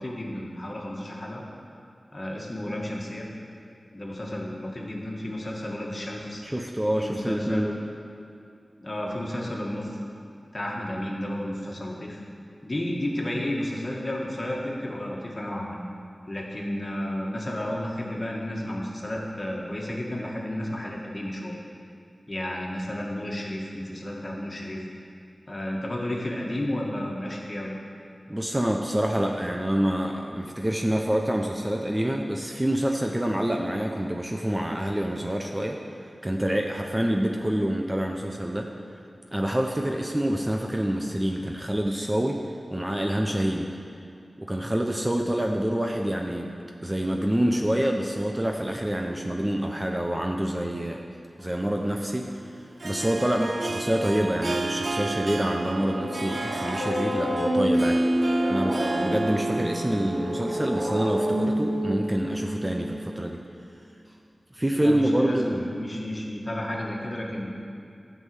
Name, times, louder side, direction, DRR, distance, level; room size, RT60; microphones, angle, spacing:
voice 1, 0.0-1.4 2.1-3.3 3.9-6.4 7.0-7.7 8.8-10.0 10.5-12.2 12.6-15.8 16.3-21.6 22.3-24.8 25.5-27.7 64.7-67.5, left 1 dB, 35° left, -2 dB, 1.8 m, -32 dB
voice 2, 6.4-7.8 28.3-35.8 36.2-38.7 39.3-42.4 42.7-43.7 44.4-46.5 46.8-51.0 51.4-52.3 52.8-63.4 64.6-65.7, right 1 dB, 15° right, 1 dB, 0.7 m, -27 dB
Harp, 51.4-61.8, right 2 dB, 55° right, 0.5 m, -34 dB
sound 1, 55.5-63.3, equal, 80° right, 3.1 m, -28 dB
12.0 x 5.5 x 7.9 m, 2.4 s
wide cardioid pair, 85°, 0 cm